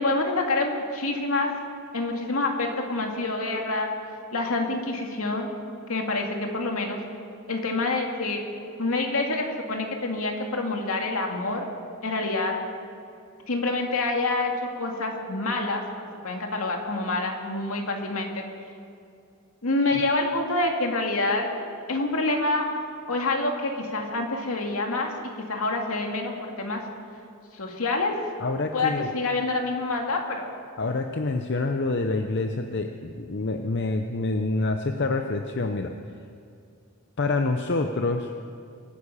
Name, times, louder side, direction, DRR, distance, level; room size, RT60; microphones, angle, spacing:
voice 1, 0.0-1.5 1.9-3.9 4.3-5.5 5.9-7.0 7.5-8.4 8.8-11.6 12.0-12.5 13.5-15.8 16.2-18.5 19.6-21.5 21.9-22.7 23.1-25.1 25.5-26.8 27.5-28.1 28.7-30.5, left 2 dB, 75° left, 2 dB, 2.3 m, -27 dB
voice 2, 28.4-29.1 30.8-35.9 37.2-38.3, left 3 dB, 55° left, 5 dB, 0.7 m, -27 dB
24.5 x 9.8 x 5.6 m, 2.5 s
head